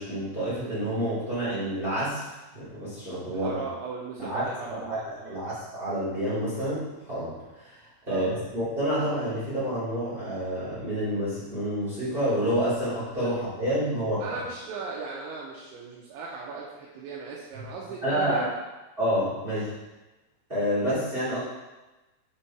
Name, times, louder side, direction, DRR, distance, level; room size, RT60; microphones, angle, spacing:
voice 1, 0.0-2.2 2.5-3.6 4.2-14.4 18.0-18.4 19.0-19.7 20.5-21.4, equal, 25° right, -9 dB, 1.2 m, -29 dB
voice 2, 3.3-5.4 8.1-8.3 13.2-13.3 13.8-13.9 14.2-18.4 19.5-19.6, right 4 dB, 80° right, -4 dB, 3.1 m, -38 dB
6.8 x 5.4 x 4.4 m, 1.1 s
omnidirectional pair, 5.3 m